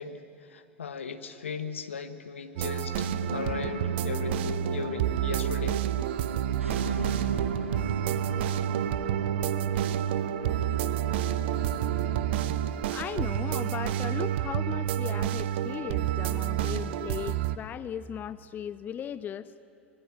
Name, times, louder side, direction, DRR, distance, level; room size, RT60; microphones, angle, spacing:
voice 1, 0.0-5.8, left 5 dB, 75° left, 11 dB, 1.3 m, -37 dB
sound 1, 2.6-17.6, right 12 dB, 60° right, 0.8 m, -29 dB
sound 2, 3.0-17.6, right 3 dB, 85° right, 1.4 m, -37 dB
voice 2, 12.9-19.5, left 9 dB, 25° left, 16 dB, 0.5 m, -37 dB
25.0 x 21.5 x 7.9 m, 2.6 s
figure-of-eight pair, 85°, 7 cm